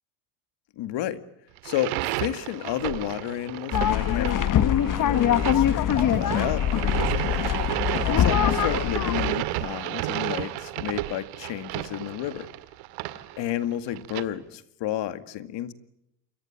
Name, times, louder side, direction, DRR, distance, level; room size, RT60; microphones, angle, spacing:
voice 1, 0.8-1.2 1.6-7.5 8.1-12.5 13.4-15.7, left 12 dB, 55° left, 12 dB, 2.1 m, -31 dB
sound 1, 1.6-14.2, right 16 dB, 80° right, 2.1 m, -32 dB
sound 2, 2.9-10.6, right 6 dB, 35° right, 4.3 m, -46 dB
sound 3, 3.7-9.3, left 10 dB, 40° left, 1.2 m, -23 dB
28.5 x 23.5 x 8.8 m, 0.80 s
supercardioid pair, 110°, 50 cm